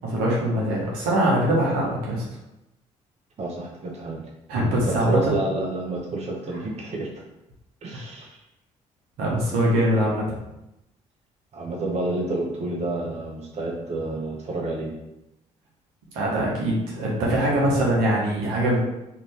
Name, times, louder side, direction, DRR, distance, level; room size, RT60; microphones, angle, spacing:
voice 1, 0.0-2.2 4.5-5.3 9.2-10.2 16.1-18.8, right 1 dB, 80° right, -4 dB, 0.9 m, -22 dB
voice 2, 3.4-4.2 4.9-7.2 7.8-8.4 11.5-14.9, right 2 dB, 45° right, -1 dB, 0.7 m, -29 dB
2.7 x 2.6 x 3.2 m, 0.90 s
hypercardioid pair, 50°, 15 cm